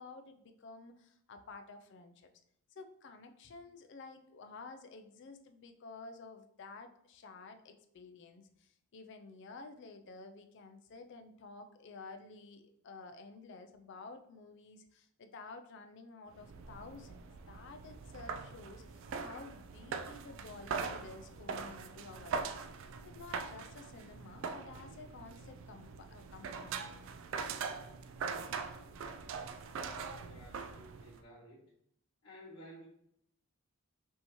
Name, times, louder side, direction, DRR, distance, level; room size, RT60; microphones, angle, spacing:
voice 1, 0.0-2.3 2.7-27.1, left 3 dB, 55° left, 6 dB, 0.4 m, -52 dB
sound 1, 16.3-31.2, right 5 dB, 60° right, 0.3 m, -42 dB
voice 2, 29.7-31.7 32.2-32.8, equal, 80° left, -9 dB, 1.4 m, -54 dB
5.4 x 2.7 x 3.0 m, 0.71 s
head